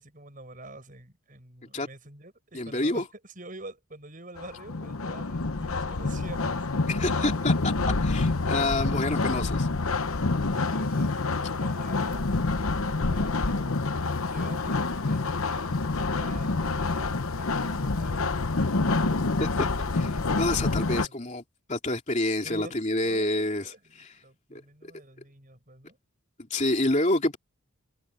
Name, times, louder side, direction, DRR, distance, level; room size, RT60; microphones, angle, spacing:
voice 1, 0.0-7.4 8.6-8.7 9.1-9.4 10.4-19.0 19.8-20.1 20.5-21.3 22.4-26.0, right 2 dB, 35° right, 8.0 m, -47 dB
voice 2, 2.5-3.1 6.9-7.7 8.0-9.7 19.4-19.7 19.9-21.4 21.7-24.1 24.5-24.6 26.5-27.4, left 2 dB, 30° left, 3.0 m, -28 dB
sound 1, 4.4-21.1, left 3 dB, 75° left, 1.0 m, -27 dB
head